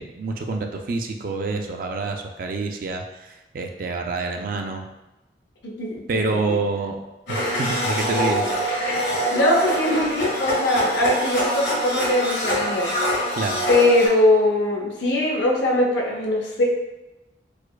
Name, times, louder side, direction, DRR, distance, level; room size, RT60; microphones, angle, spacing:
voice 1, 0.0-3.0 3.5-4.8 6.1-7.0 7.3-8.5 13.4-13.6, right 3 dB, 50° right, 4 dB, 0.3 m, -27 dB
voice 2, 5.6-6.6 9.3-12.9 13.7-16.6, left 1 dB, 90° left, -2 dB, 0.7 m, -21 dB
Domestic sounds home sounds, 7.3-14.1, equal, 70° left, 1.5 m, -24 dB
4.6 x 2.2 x 2.3 m, 1.0 s
head